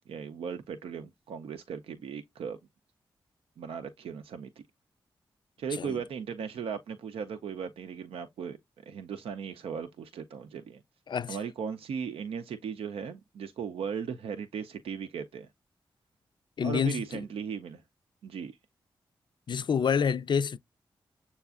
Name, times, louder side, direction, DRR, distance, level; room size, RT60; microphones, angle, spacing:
voice 1, 0.1-2.6 3.6-4.6 5.6-8.6 8.9-10.8 11.3-15.5 16.6-17.8 18.2-18.6, right 7 dB, 85° right, 0.5 m, -37 dB
voice 2, 11.1-11.4 16.6-17.2 19.5-20.6, left 6 dB, 55° left, 0.4 m, -28 dB
6.9 x 2.3 x 2.3 m
supercardioid pair, 45°, 10 cm